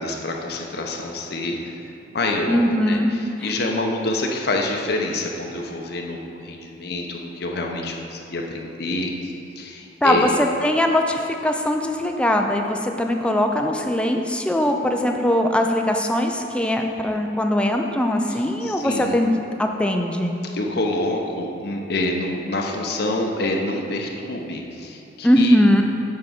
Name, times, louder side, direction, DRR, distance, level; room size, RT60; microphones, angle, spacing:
voice 1, 0.0-1.7 2.1-2.6 2.9-10.3 18.3-19.2 20.5-25.6, left 2 dB, 60° left, 1 dB, 0.9 m, -27 dB
voice 2, 2.5-3.1 10.0-20.3 25.2-25.8, left 1 dB, 5° left, 3 dB, 0.5 m, -21 dB
7.5 x 4.8 x 5.9 m, 2.8 s
head